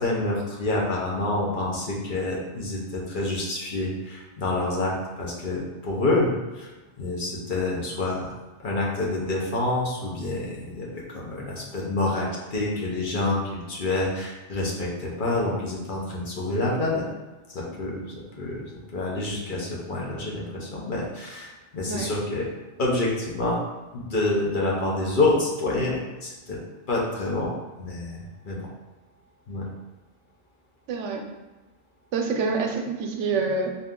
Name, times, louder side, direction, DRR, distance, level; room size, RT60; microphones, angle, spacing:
voice 1, 0.0-6.7 7.0-8.3 8.6-17.0 17.5-18.6 18.9-22.5 22.8-23.6 23.9-26.6 26.9-27.5 27.8-28.6 29.5-29.6, left 2 dB, 50° left, -4 dB, 0.9 m, -27 dB
voice 2, 30.9-31.2 32.1-33.8, right 4 dB, 80° right, 3 dB, 0.9 m, -26 dB
4.0 x 2.6 x 3.6 m, 1.1 s
omnidirectional pair, 1.2 m